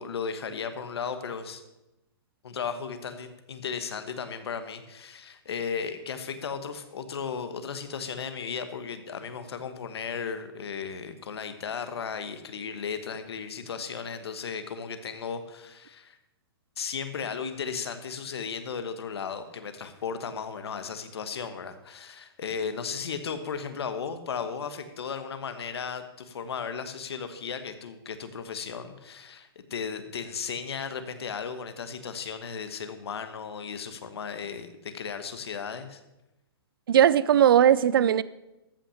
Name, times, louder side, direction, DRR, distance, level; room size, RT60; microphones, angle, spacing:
voice 1, 0.0-1.6 2.4-16.2 16.8-36.0, left 6 dB, 80° left, 1.2 m, -35 dB
voice 2, 36.9-38.2, right 10 dB, 60° right, 0.5 m, -19 dB
14.0 x 5.8 x 7.2 m
hypercardioid pair, 165°, 13 cm